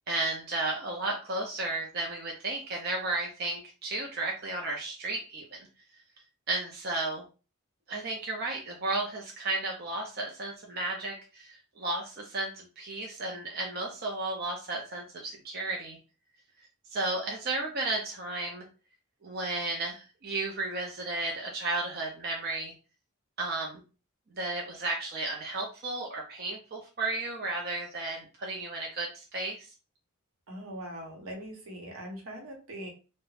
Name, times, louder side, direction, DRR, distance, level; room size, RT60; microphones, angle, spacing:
voice 1, 0.1-5.6 6.5-7.2 7.9-16.0 16.9-18.6 19.2-22.7 23.4-23.8 24.3-29.7, right 2 dB, 45° right, 0 dB, 0.5 m, -33 dB
voice 2, 30.5-32.9, right 1 dB, 80° right, 0 dB, 0.9 m, -41 dB
2.4 x 2.1 x 3.2 m, 0.34 s
head